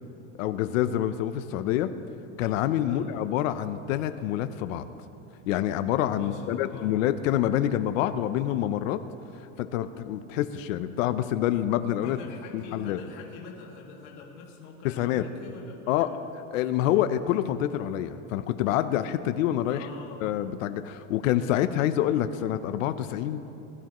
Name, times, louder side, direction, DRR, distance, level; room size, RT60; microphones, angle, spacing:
voice 1, 0.4-1.9 2.4-4.9 5.5-9.0 9.6-12.2 12.5-13.0 14.8-15.3 15.9-16.1 16.5-19.9 20.2-23.4, left 12 dB, 80° left, 11 dB, 0.7 m, -27 dB
voice 2, 6.1-6.9 12.0-16.1 19.7-20.4, left 4 dB, 65° left, -3 dB, 2.1 m, -44 dB
20.5 x 12.0 x 3.0 m, 2.8 s
supercardioid pair, 165°, 39 cm